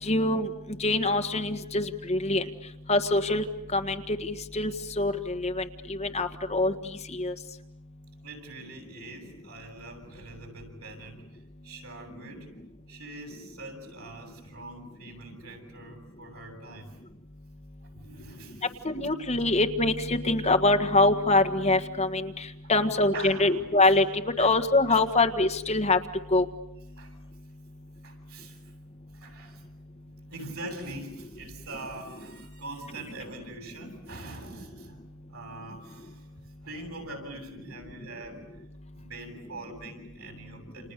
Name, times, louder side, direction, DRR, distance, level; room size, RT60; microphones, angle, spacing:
voice 1, 0.0-0.5 0.8-2.4 2.9-3.4 3.7-6.7 7.1-7.3 18.8-24.0 24.4-26.0 26.3-26.4, left 2 dB, 30° left, 7 dB, 1.6 m, -24 dB
voice 2, 8.2-12.5 12.9-17.0 17.8-18.7 19.4-19.5 22.6-23.7 24.4-24.5 24.9-25.0 27.0-27.2 28.0-28.7 29.1-29.7 30.0-36.3 36.6-38.5 38.9-40.9, right 2 dB, 85° right, 4 dB, 7.8 m, -43 dB
30.0 x 28.5 x 6.8 m, 0.84 s
head